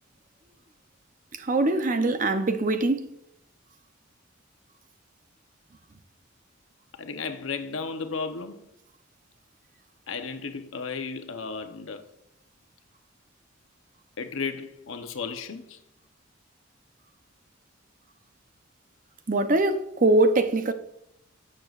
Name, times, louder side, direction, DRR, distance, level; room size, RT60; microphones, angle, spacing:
voice 1, 1.4-3.1 19.3-20.7, right 2 dB, 40° right, 0.6 m, -22 dB
voice 2, 7.0-8.6 10.1-12.0 14.2-15.8, left 5 dB, 80° left, 0.8 m, -34 dB
15.5 x 6.6 x 2.4 m
head